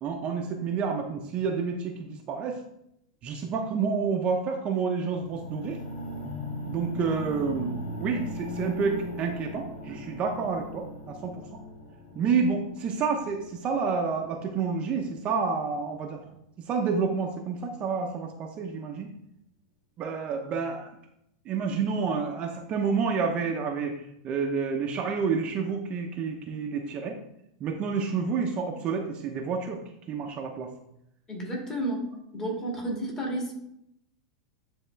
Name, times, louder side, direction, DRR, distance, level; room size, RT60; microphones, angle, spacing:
voice 1, 0.0-2.6 3.2-5.8 6.7-11.4 12.1-16.2 16.7-19.1 20.0-20.9 21.4-27.2 27.6-29.8 30.1-30.7, right 5 dB, 35° right, 2 dB, 0.8 m, -29 dB
sound 1, 5.1-15.2 15.9-16.0, left 1 dB, 60° left, 1.7 m, -39 dB
voice 2, 31.3-32.1 32.3-33.5, right 1 dB, 20° left, -2 dB, 2.3 m, -31 dB
9.6 x 3.6 x 3.4 m, 0.78 s
hypercardioid pair, 125°, 3 cm